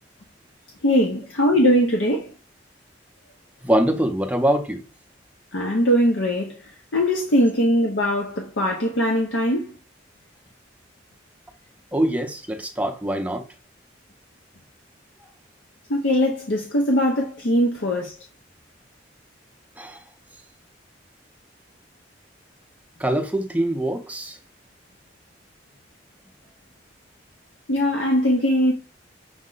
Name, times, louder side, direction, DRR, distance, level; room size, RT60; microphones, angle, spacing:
voice 1, 0.8-2.3 5.5-6.6 6.9-9.7 15.9-18.1 27.7-28.7, equal, 70° left, 0.7 m, -21 dB
voice 2, 3.6-4.8 11.9-13.4 19.8-20.0 23.0-24.4, right 1 dB, 5° right, 0.5 m, -23 dB
6.3 x 2.1 x 3.8 m
head